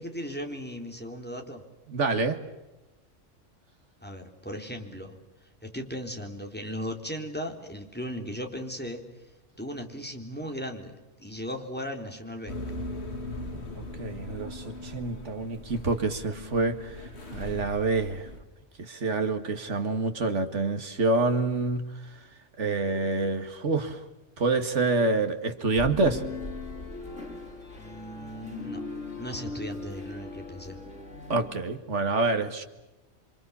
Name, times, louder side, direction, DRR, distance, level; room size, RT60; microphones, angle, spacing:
voice 1, 0.0-1.6 4.0-5.2 5.6-9.0 9.6-12.5 27.8-28.9 29.2-30.8, equal, 10° left, 3 dB, 3.6 m, -37 dB
voice 2, 1.9-2.4 13.7-18.3 18.8-22.2 22.6-24.0 24.4-26.2 31.3-32.6, right 3 dB, 70° right, 6 dB, 2.3 m, -27 dB
sound 1, 12.5-18.4, left 2 dB, 60° left, 2.7 m, -39 dB
sound 2, 25.8-31.5, left 3 dB, 80° left, 6.1 m, -39 dB
28.5 x 25.0 x 7.1 m, 1.0 s
omnidirectional pair, 1.3 m